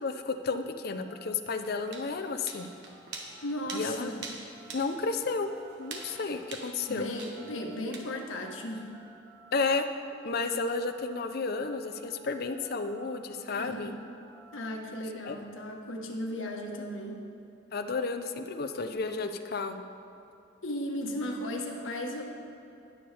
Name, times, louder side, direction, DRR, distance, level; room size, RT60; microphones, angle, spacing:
voice 1, 0.0-2.7 3.7-4.1 4.7-5.5 5.8-7.1 9.5-9.9 10.2-14.0 15.3-15.4 17.7-19.8, left 4 dB, 50° left, 7 dB, 0.6 m, -32 dB
sound 1, 1.1-11.2 11.5-14.7, right 2 dB, 5° right, 1.2 m, -56 dB
sound 2, 1.5-8.0, right 4 dB, 60° right, 1.2 m, -45 dB
voice 2, 3.4-4.1 6.9-8.9 13.5-14.0 14.5-17.2 20.6-22.2, left 1 dB, 90° left, 1 dB, 1.3 m, -35 dB
19.0 x 7.0 x 3.4 m, 2.7 s
head